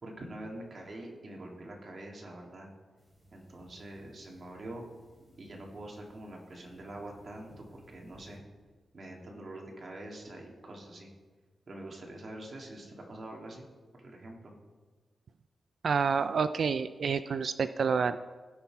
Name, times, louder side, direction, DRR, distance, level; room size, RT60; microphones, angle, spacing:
voice 1, 0.0-2.7 3.3-4.8 5.4-8.4 8.9-11.1 11.7-13.7 13.9-14.5, right 1 dB, 40° right, 0 dB, 2.0 m, -45 dB
sound 1, 3.0-8.4, equal, 10° right, 2.7 m, -58 dB
voice 2, 15.8-18.2, right 5 dB, 60° right, 12 dB, 0.3 m, -28 dB
16.5 x 5.7 x 4.6 m, 1.4 s
wide cardioid pair, 125°, 0 cm